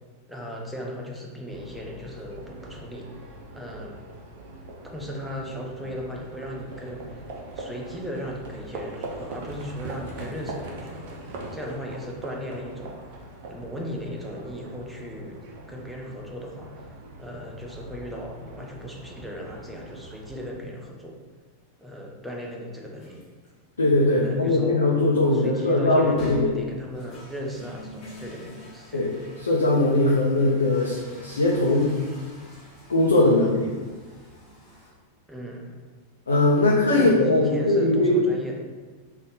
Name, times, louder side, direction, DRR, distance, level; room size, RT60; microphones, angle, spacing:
voice 1, 0.3-3.2 3.5-4.0 4.8-7.2 7.5-11.1 11.5-13.0 13.5-15.4 15.7-16.9 17.2-21.2 21.8-23.2 24.2-24.8 25.3-29.0 35.3-35.8 36.9-38.7, equal, ahead, -2 dB, 0.6 m, -36 dB
Livestock farm animals working animals, 1.5-20.5, right 2 dB, 50° right, 0.6 m, -41 dB
sound 1, 23.0-23.5 24.2-24.3 26.0-34.9, left 1 dB, 20° left, 1.4 m, -43 dB
voice 2, 23.8-26.5 28.9-31.9 32.9-33.7 36.3-38.2, left 2 dB, 75° left, -3 dB, 0.5 m, -20 dB
3.5 x 2.5 x 3.7 m, 1.4 s
figure-of-eight pair, 90°, 0 cm